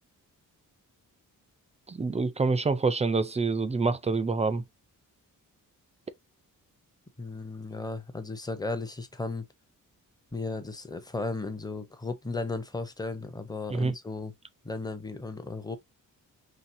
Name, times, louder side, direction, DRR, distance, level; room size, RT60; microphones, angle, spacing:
voice 1, 1.9-4.6 13.7-13.9, right 4 dB, 20° right, 0.4 m, -26 dB
voice 2, 7.2-9.5 10.3-14.3 14.6-15.8, left 3 dB, 10° left, 0.7 m, -35 dB
5.8 x 3.2 x 2.7 m
wide cardioid pair, 175°, 33 cm